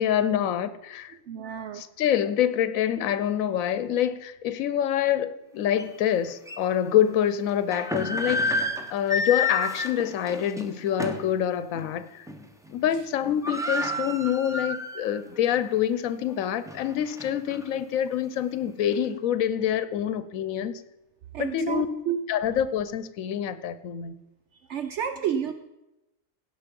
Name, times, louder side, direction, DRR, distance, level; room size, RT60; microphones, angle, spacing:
voice 1, 0.0-1.1 1.7-12.3 12.7-20.8 21.4-21.9 22.3-24.1, left 10 dB, 80° left, 13 dB, 1.1 m, -26 dB
voice 2, 1.3-1.8 21.3-22.2 24.5-25.5, right 9 dB, 65° right, 9 dB, 0.9 m, -30 dB
sound 1, 5.8-5.9 6.5-6.6 7.5-11.3 11.7-11.9 12.3-12.7 12.9-13.0 13.2-15.2 15.6-15.7 16.3-17.6, left 2 dB, 5° right, 0.8 m, -30 dB
16.5 x 5.6 x 5.3 m, 0.95 s
omnidirectional pair, 1.4 m